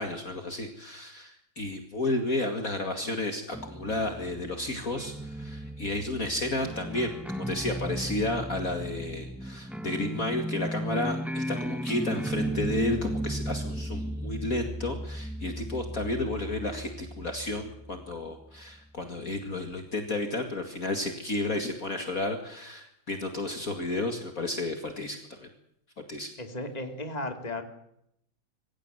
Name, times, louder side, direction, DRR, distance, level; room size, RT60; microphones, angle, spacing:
voice 1, 0.0-25.5 26.1-26.3, left 2 dB, 45° left, 5 dB, 2.5 m, -32 dB
sound 1, 3.5-18.9, right 1 dB, ahead, 0.4 m, -35 dB
voice 2, 26.4-27.6, left 2 dB, 20° left, 6 dB, 2.9 m, -35 dB
24.0 x 16.0 x 9.3 m, 0.75 s
omnidirectional pair, 2.3 m